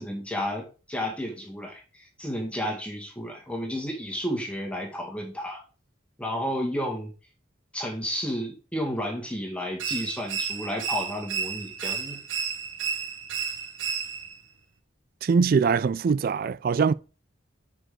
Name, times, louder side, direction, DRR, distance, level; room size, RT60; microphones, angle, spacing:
voice 1, 0.0-5.6 6.2-7.1 7.7-12.2, equal, 5° left, 1.8 m, -32 dB
sound 1, 9.8-14.4, right 6 dB, 85° right, 1.2 m, -32 dB
voice 2, 15.2-16.9, right 5 dB, 50° right, 0.3 m, -22 dB
9.2 x 5.1 x 3.7 m
head